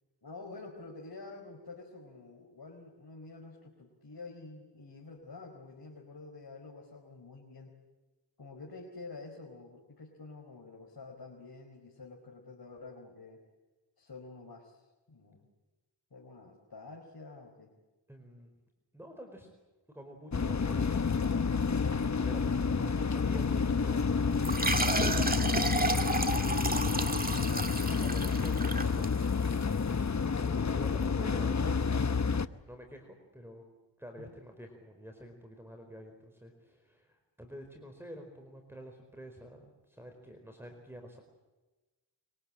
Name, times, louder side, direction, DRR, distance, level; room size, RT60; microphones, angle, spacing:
voice 1, 0.2-7.8 8.4-13.4 14.0-15.5 16.1-17.8 34.2-34.3, left 3 dB, 60° left, 0 dB, 4.6 m, -48 dB
voice 2, 18.1-18.5 18.9-19.5 19.9-21.4 22.1-24.5 24.8-27.4 27.9-32.2 32.7-33.6 34.0-41.2, equal, 5° right, 4 dB, 4.7 m, -49 dB
sound 1, 20.3-32.5, left 5 dB, 40° left, 1.0 m, -29 dB
sound 2, 24.4-29.6, right 2 dB, 20° right, 2.1 m, -32 dB
24.5 x 24.0 x 8.8 m, 1.2 s
wide cardioid pair, 60°, 43 cm